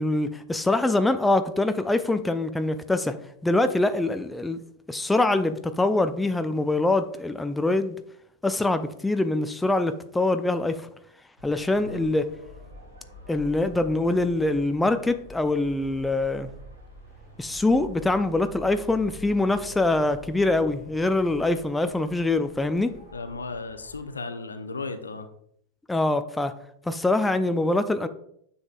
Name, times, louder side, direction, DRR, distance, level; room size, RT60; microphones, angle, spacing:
voice 1, 0.0-3.1 3.4-4.6 4.9-8.0 8.4-10.8 11.4-12.3 13.3-16.5 17.4-22.9 25.9-26.5 26.9-28.1, left 2 dB, 5° left, 9 dB, 0.5 m, -24 dB
sound 1, 11.4-24.2, left 1 dB, 75° right, 3.1 m, -47 dB
voice 2, 23.1-25.3, left 3 dB, 75° left, 9 dB, 0.7 m, -35 dB
9.6 x 7.0 x 2.4 m, 0.70 s
figure-of-eight pair, 90°, 0 cm